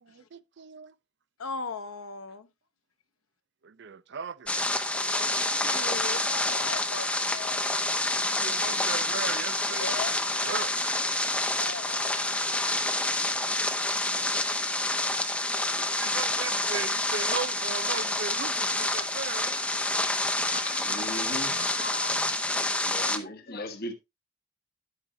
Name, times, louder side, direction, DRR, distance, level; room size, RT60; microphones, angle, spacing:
voice 1, 0.0-0.9 3.6-4.5 8.2-9.9 10.4-10.7 11.0-11.1 13.3-13.9 15.6-19.6, right 6 dB, 55° right, 0.5 m, -38 dB
voice 2, 1.4-2.5 4.9-8.1 9.6-10.4 11.6-12.5 23.1-23.2, left 4 dB, 85° left, 1.0 m, -39 dB
sound 1, 4.5-23.2, left 2 dB, 5° left, 0.8 m, -28 dB
voice 3, 20.5-22.4 22.8-23.9, left 2 dB, 45° left, 1.3 m, -38 dB
11.0 x 8.8 x 2.2 m
head